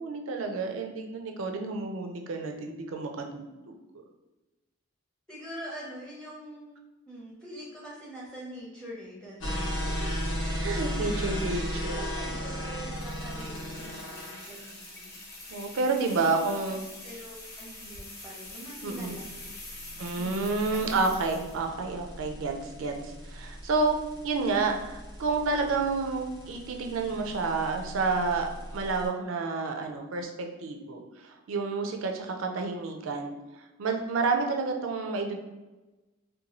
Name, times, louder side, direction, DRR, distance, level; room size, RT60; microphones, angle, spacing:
voice 1, 0.0-3.7 10.3-10.4 10.6-12.0 15.5-16.8 18.8-19.2 20.0-24.0 24.2-33.3 33.8-35.4, right 3 dB, 75° right, 4 dB, 0.4 m, -30 dB
voice 2, 5.3-6.8 7.1-10.1 11.2-11.3 11.9-15.1 16.1-16.4 17.0-19.5 19.9-21.0, right 1 dB, 5° left, -6 dB, 0.5 m, -44 dB
sound 1, 9.4-29.1, equal, 85° left, 0.8 m, -37 dB
sound 2, 12.9-21.6, left 2 dB, 50° left, 0.8 m, -45 dB
2.6 x 2.2 x 2.9 m, 1.1 s
head